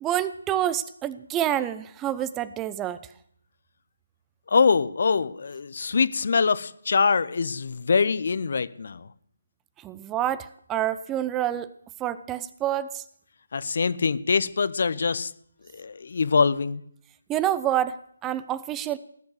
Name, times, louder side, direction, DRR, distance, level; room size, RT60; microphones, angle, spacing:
voice 1, 0.0-3.0 9.8-11.7 12.0-13.0 17.3-19.0, right 11 dB, 15° right, 16 dB, 0.5 m, -27 dB
voice 2, 4.5-9.1 13.5-15.3 15.7-16.8, left 5 dB, 55° left, 17 dB, 0.8 m, -24 dB
18.0 x 7.1 x 7.9 m, 0.64 s
figure-of-eight pair, 150°, 0 cm